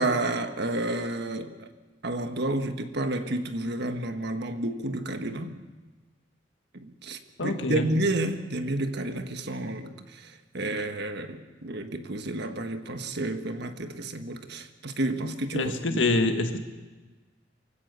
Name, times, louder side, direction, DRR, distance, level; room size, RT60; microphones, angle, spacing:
voice 1, 0.0-1.7 2.0-5.6 6.7-16.2, right 1 dB, 65° right, 1.5 m, -30 dB
voice 2, 7.4-7.9 15.5-16.6, left 2 dB, 85° left, 1.8 m, -25 dB
24.0 x 16.0 x 6.8 m
head